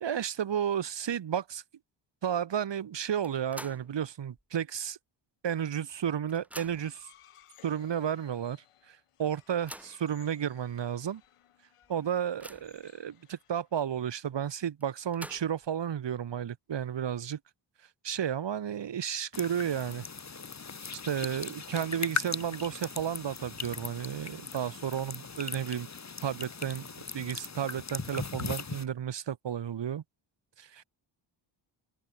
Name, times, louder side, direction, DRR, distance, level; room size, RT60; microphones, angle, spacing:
voice 1, 0.0-1.6 2.2-5.0 5.4-7.1 7.6-8.6 8.9-11.2 11.9-17.4 18.0-20.0 21.0-25.9 26.2-30.0 30.6-30.8, right 9 dB, 55° right, 1.9 m, -32 dB
sound 1, 3.2-4.0 4.4-4.5 5.5-5.6 5.9-7.0 7.8-7.9 8.3-8.4 9.3-10.0 10.7-10.8 11.2-11.3 11.8-12.9 14.8-15.7, equal, 5° right, 2.0 m, -47 dB
sound 2, 6.6-13.9, left 11 dB, 85° left, 8.0 m, -61 dB
sound 3, 19.3-28.8, left 5 dB, 30° left, 2.2 m, -39 dB
open air
cardioid pair, 80°, 50 cm